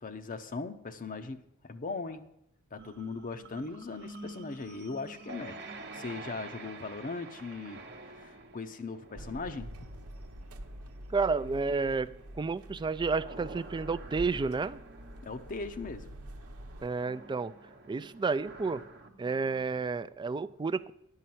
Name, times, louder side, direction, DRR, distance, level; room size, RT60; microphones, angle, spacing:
voice 1, 0.0-2.2 2.7-5.6 5.9-9.9 15.2-16.1, left 3 dB, 40° left, 8 dB, 0.7 m, -39 dB
sound 1, 2.8-20.0, right 2 dB, 50° right, 0.9 m, -49 dB
sound 2, 9.2-16.9, right 1 dB, 90° right, 0.9 m, -46 dB
voice 2, 11.1-12.1 12.4-14.8 16.8-17.5 17.9-18.8 19.2-20.9, right 4 dB, 20° right, 16 dB, 0.3 m, -31 dB
11.0 x 5.7 x 7.7 m, 0.78 s
head